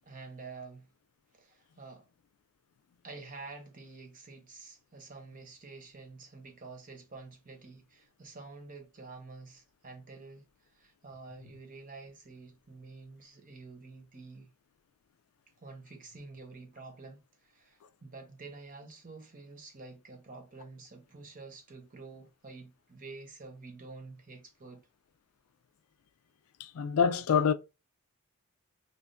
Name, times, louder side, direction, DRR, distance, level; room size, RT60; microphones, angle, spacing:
voice 1, 0.0-0.9 1.3-2.1 3.0-14.5 15.6-24.8, right 3 dB, 35° right, 0.9 m, -49 dB
voice 2, 26.6-27.5, left 6 dB, 70° left, 0.4 m, -26 dB
3.4 x 2.5 x 2.5 m
head